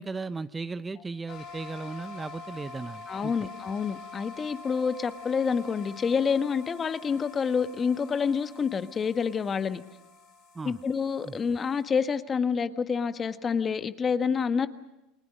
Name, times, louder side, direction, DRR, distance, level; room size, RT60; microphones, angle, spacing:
voice 1, 0.0-3.3 10.5-10.8 11.2-11.4, right 4 dB, 20° right, 13 dB, 0.8 m, -36 dB
sound 1, 1.3-11.8, left 4 dB, 60° left, 4.8 m, -46 dB
voice 2, 3.1-9.8 10.6-14.7, left 6 dB, 30° left, 10 dB, 1.5 m, -28 dB
29.5 x 21.0 x 6.3 m, 0.95 s
hypercardioid pair, 95°, 0 cm